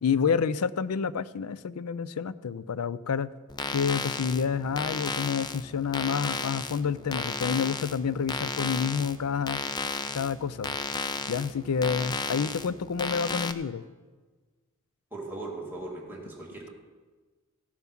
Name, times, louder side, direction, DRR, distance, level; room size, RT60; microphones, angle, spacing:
voice 1, 0.0-3.3 3.7-9.6 10.1-10.8 11.3-13.8, left 6 dB, 85° left, 17 dB, 0.5 m, -29 dB
sound 1, 3.5-13.5, left 4 dB, 20° left, 0.4 m, -34 dB
voice 2, 15.1-16.7, right 2 dB, 10° right, -3 dB, 2.2 m, -38 dB
16.0 x 7.1 x 5.9 m, 1.4 s
head